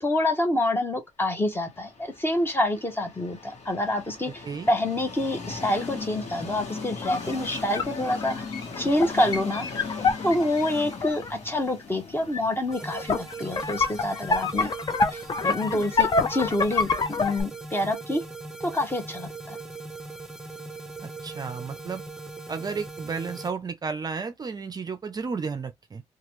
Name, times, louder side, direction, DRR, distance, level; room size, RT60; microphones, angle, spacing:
voice 1, 0.0-8.5 8.8-9.7 10.2-14.7 15.1-18.2 18.6-19.6, left 1 dB, 20° left, 1.0 m, -27 dB
Train, 1.6-17.4, left 4 dB, 70° left, 1.1 m, -39 dB
sound 1, 7.0-11.3 12.3-12.4 12.7-17.4, left 4 dB, 40° left, 0.6 m, -27 dB
sound 2, 12.7-23.5, right 3 dB, 5° right, 0.8 m, -40 dB
voice 2, 21.0-22.0 22.5-26.0, right 5 dB, 35° right, 0.5 m, -33 dB
2.9 x 2.3 x 3.0 m
cardioid pair, 105°, 12 cm